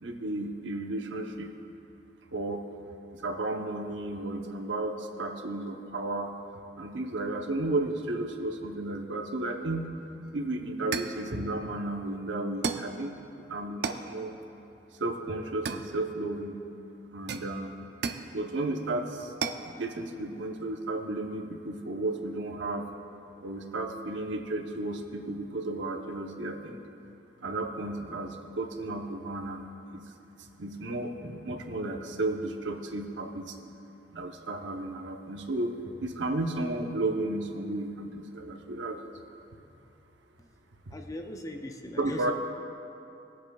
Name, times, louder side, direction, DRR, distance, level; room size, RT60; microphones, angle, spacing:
voice 1, 0.0-1.5 2.3-2.6 3.1-6.3 6.8-9.9 10.3-14.3 15.0-16.6 17.1-17.7 18.3-19.3 19.8-22.9 23.4-26.8 27.4-29.7 29.9-30.0 30.4-33.6 34.1-35.7 36.0-39.0 40.9-41.0 42.0-42.3, right 2 dB, 75° right, 3 dB, 0.8 m, -33 dB
sound 1, 10.2-10.4 10.9-11.3 12.6-13.0 13.8-14.1 15.6-16.3 17.3-18.3 19.4-19.7, right 5 dB, 60° right, 0.5 m, -34 dB
voice 2, 40.9-42.3, left 1 dB, 20° left, 4 dB, 0.5 m, -39 dB
21.5 x 7.5 x 2.3 m, 2.8 s
head